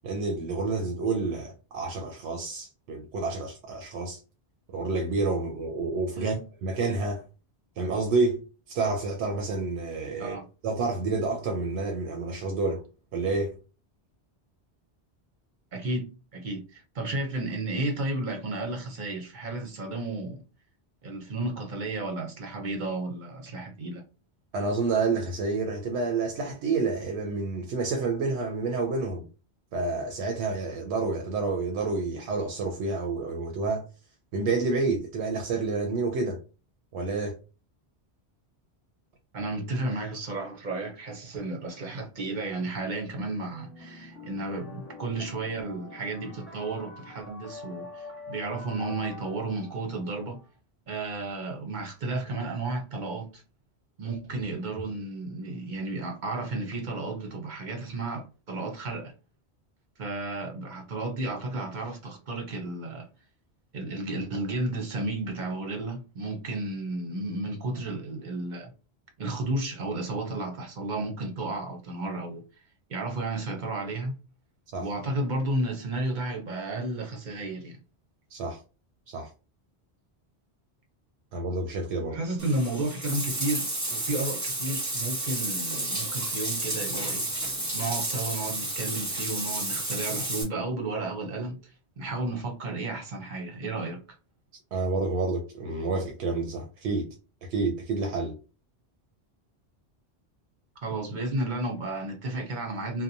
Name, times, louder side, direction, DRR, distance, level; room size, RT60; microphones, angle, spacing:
voice 1, 0.0-4.2 4.7-6.3 6.6-7.2 7.8-8.4 8.7-10.4 10.6-12.8 13.1-13.6 24.5-29.2 29.7-33.8 34.3-36.4 36.9-37.4 74.7-74.9 78.3-78.6 79.1-79.3 81.3-82.2 94.7-97.1 97.4-98.4, right 3 dB, 90° right, 0.9 m, -29 dB
voice 2, 15.7-20.4 21.0-24.0 39.3-50.4 50.9-53.4 54.0-59.1 60.0-63.1 63.7-68.7 69.2-72.4 72.9-74.2 74.8-77.8 82.1-87.3 87.7-94.0 100.8-103.0, right 2 dB, 50° right, 0.7 m, -33 dB
sound 1, 43.4-50.5, left 2 dB, 15° left, 0.9 m, -45 dB
Bathtub (filling or washing), 82.4-90.4, right 2 dB, 15° right, 0.8 m, -31 dB
2.8 x 2.1 x 2.5 m
omnidirectional pair, 1.1 m